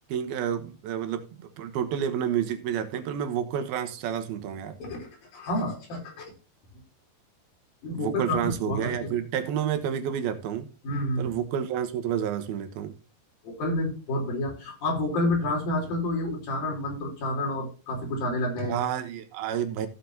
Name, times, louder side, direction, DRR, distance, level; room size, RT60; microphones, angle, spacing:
voice 1, 0.1-4.8 7.9-10.7 11.2-12.9 18.6-19.9, right 9 dB, 80° right, 3.0 m, -30 dB
voice 2, 4.8-6.3 7.8-9.1 10.8-11.3 13.4-18.8, left 1 dB, 65° left, 5.8 m, -29 dB
15.0 x 7.5 x 2.9 m
omnidirectional pair, 4.3 m